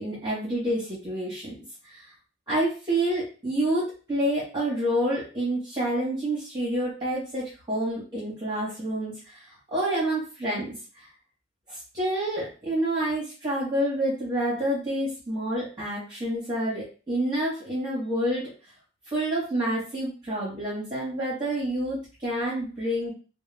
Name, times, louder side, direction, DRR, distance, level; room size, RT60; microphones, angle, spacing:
voice 1, 0.0-1.5 1.8-2.1 2.5-11.1 11.7-18.5 19.1-23.1, right 1 dB, 20° right, -8 dB, 0.9 m, -28 dB
2.2 x 2.1 x 3.2 m, 0.35 s
head